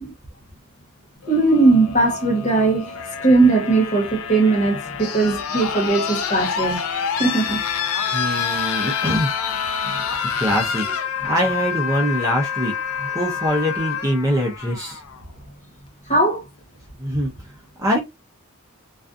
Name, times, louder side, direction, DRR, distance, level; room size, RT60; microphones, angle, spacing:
sound 1, 1.2-15.2 16.4-16.5, left 7 dB, 75° left, 0.5 m, -27 dB
voice 1, 1.3-7.6 9.8-10.0 16.1-16.4, right 3 dB, 35° left, 1.1 m, -19 dB
voice 2, 8.1-9.3 10.4-10.9 11.2-12.7 13.1-15.0 17.0-17.3 17.8-18.0, equal, 15° right, 0.5 m, -23 dB
2.4 x 2.3 x 2.5 m
head